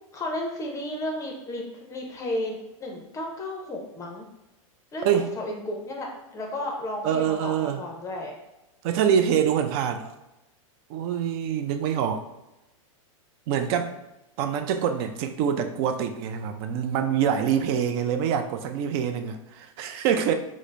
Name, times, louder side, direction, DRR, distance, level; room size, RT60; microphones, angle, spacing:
voice 1, 0.1-4.2 4.9-5.1 5.3-8.4, left 1 dB, 15° left, 0 dB, 0.5 m, -33 dB
voice 2, 7.0-7.8 8.8-10.1 10.9-12.2 13.5-14.0 14.4-20.3, right 8 dB, 45° right, 8 dB, 0.4 m, -25 dB
3.7 x 2.0 x 3.2 m, 0.95 s
hypercardioid pair, 125°, 18 cm